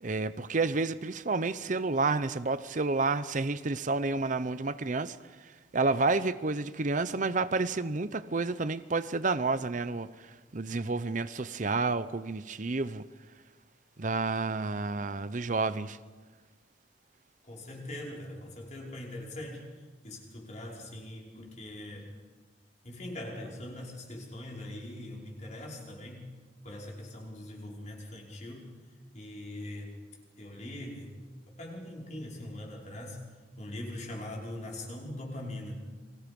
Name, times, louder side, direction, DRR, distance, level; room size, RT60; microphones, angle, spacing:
voice 1, 0.0-13.0 14.0-16.0, right 3 dB, 45° right, 0.7 m, -30 dB
voice 2, 17.4-19.7 20.0-22.1 22.8-26.3 26.6-28.7 29.1-30.0 30.4-31.1 31.6-33.2 33.6-35.8, left 1 dB, 40° left, 5.5 m, -41 dB
30.0 x 24.5 x 5.4 m
head